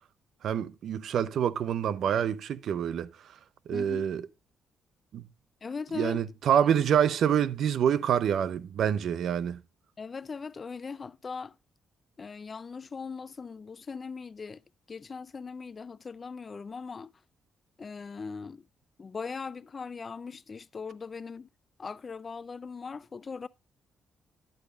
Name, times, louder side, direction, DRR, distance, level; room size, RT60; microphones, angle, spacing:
voice 1, 0.4-3.1 3.7-4.2 5.1-5.2 5.9-9.6, right 9 dB, 65° right, 0.5 m, -26 dB
voice 2, 3.7-4.1 5.6-6.2 10.0-11.5 12.2-14.6 14.9-17.1 17.8-18.6 19.0-21.5 21.8-23.5, left 5 dB, 35° left, 0.4 m, -39 dB
10.5 x 8.1 x 2.3 m
cardioid pair, 90°, 0 cm